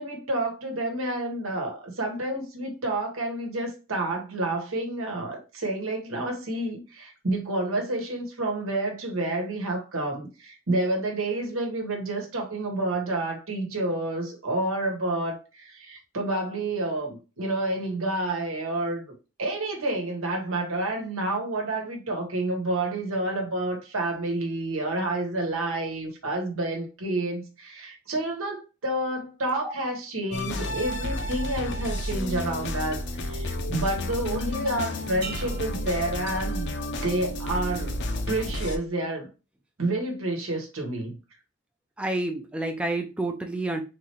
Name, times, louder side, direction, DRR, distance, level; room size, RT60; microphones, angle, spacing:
voice 1, 0.0-19.0 19.4-36.8 37.0-38.0 38.3-39.3 39.8-41.2, right 2 dB, 80° right, 1.2 m, -29 dB
sound 1, 30.3-38.8, left 1 dB, 60° left, 0.6 m, -31 dB
sound 2, 35.2-37.0 37.5-37.9, right 5 dB, 50° right, 1.1 m, -43 dB
voice 2, 42.0-43.8, right 2 dB, 5° right, 0.4 m, -29 dB
3.8 x 3.1 x 2.9 m
head